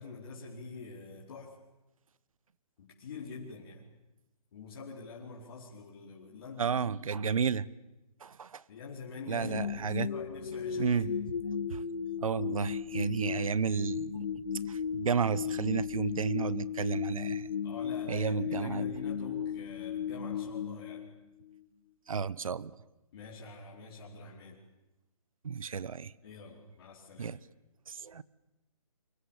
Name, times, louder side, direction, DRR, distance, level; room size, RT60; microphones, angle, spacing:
voice 1, 0.0-1.5 2.8-3.8 4.5-6.8 7.2-7.4 8.7-11.2 17.6-21.0 23.1-24.6 26.2-27.4, left 4 dB, 40° left, 4.6 m, -45 dB
voice 2, 6.6-7.7 8.2-8.6 9.3-10.1 10.7-11.4 11.7-11.8 12.2-17.5 18.1-18.9 22.1-22.7 25.4-26.1 27.2-27.4 27.9-28.2, right 6 dB, 60° right, 1.1 m, -32 dB
sound 1, 9.4-21.6, left 7 dB, 65° left, 1.7 m, -36 dB
29.0 x 25.0 x 7.4 m
hypercardioid pair, 160°, 19 cm